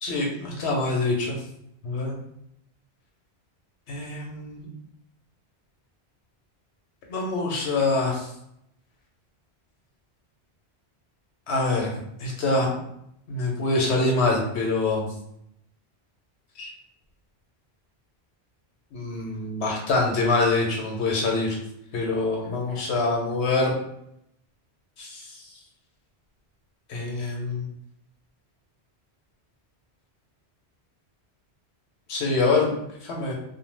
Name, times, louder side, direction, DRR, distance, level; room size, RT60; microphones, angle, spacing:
voice 1, 0.0-1.4 1.8-2.2 3.9-4.7 7.1-8.3 11.5-12.7 13.3-15.1 16.6-16.7 18.9-21.6 21.9-23.8 25.0-25.2 26.9-27.6 32.1-32.7 33.0-33.3, left 3 dB, 90° left, -1 dB, 1.0 m, -25 dB
2.3 x 2.2 x 3.2 m, 0.76 s
omnidirectional pair, 1.1 m